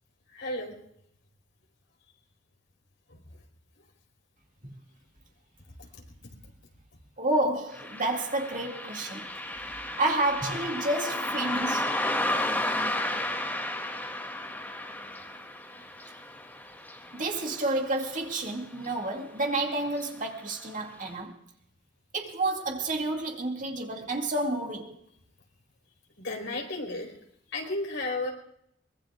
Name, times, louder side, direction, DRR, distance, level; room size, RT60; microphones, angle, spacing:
voice 1, 0.3-0.7 3.1-3.2 5.8-6.0 15.8-15.9 26.2-27.1 27.5-28.3, left 2 dB, 70° left, 4.4 m, -33 dB
voice 2, 7.2-9.3 9.8-11.9 17.1-21.4 22.1-24.9, right 2 dB, 45° right, 2.4 m, -30 dB
Car passing by, 7.7-18.5 18.8-18.9 19.9-20.1 20.5-20.6 21.1-21.2, left 1 dB, 10° left, 2.6 m, -33 dB
23.5 x 21.0 x 2.5 m
head